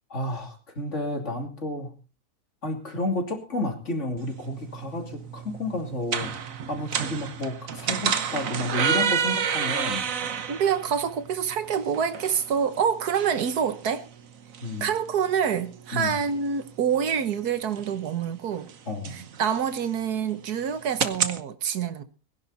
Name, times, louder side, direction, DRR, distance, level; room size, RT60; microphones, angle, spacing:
voice 1, 0.1-1.9 2.6-6.3 6.7-10.0 14.6-14.9 15.9-16.2 18.9-19.2, left 1 dB, 50° left, 3.1 m, -31 dB
sound 1, 4.2-21.4, right 7 dB, 60° right, 1.5 m, -32 dB
voice 2, 10.5-14.1 14.8-18.7 19.1-22.0, right 7 dB, 85° right, 1.7 m, -26 dB
21.0 x 11.0 x 4.1 m
omnidirectional pair, 1.6 m